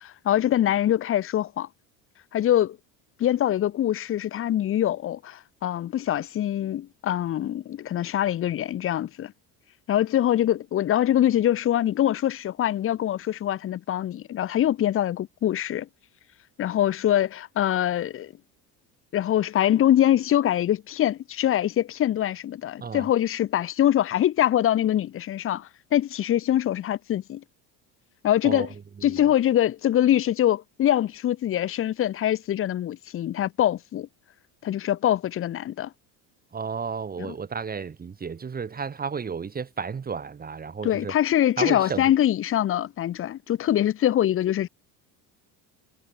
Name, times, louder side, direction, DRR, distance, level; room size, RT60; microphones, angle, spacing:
voice 1, 0.0-1.7 2.3-2.8 3.2-9.3 9.9-15.9 16.6-18.3 19.1-27.4 28.2-28.7 29.0-34.1 34.6-35.9 40.8-44.7, left 11 dB, 30° left, 0.7 m, -24 dB
voice 2, 29.0-29.3 36.5-41.1 41.6-42.1, right 5 dB, 20° right, 2.1 m, -33 dB
cardioid pair, 140°, 40 cm